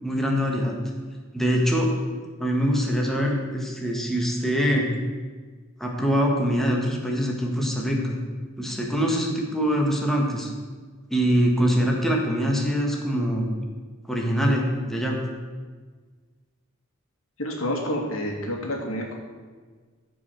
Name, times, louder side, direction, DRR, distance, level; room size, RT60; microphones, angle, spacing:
voice 1, 0.0-0.7 1.3-1.9 2.4-4.9 5.8-8.2 8.6-10.5 11.1-13.5 14.1-15.2, equal, ahead, -1 dB, 1.7 m, -23 dB
voice 2, 17.4-19.2, equal, 80° left, 0 dB, 2.6 m, -29 dB
14.5 x 5.5 x 7.7 m, 1.5 s
head